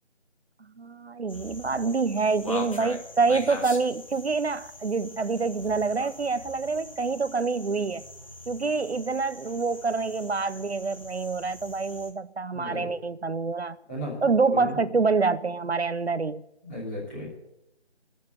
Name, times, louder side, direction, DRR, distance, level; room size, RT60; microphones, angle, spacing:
voice 1, 0.8-8.0 8.5-13.8 14.2-16.4, right 4 dB, 65° right, 0.6 m, -26 dB
sound 1, 1.3-12.1, left 2 dB, 30° left, 1.5 m, -42 dB
voice 2, 12.5-12.9 13.9-14.8 16.6-17.3, left 1 dB, 10° left, 2.9 m, -35 dB
12.5 x 7.3 x 9.6 m
figure-of-eight pair, 170°, 35 cm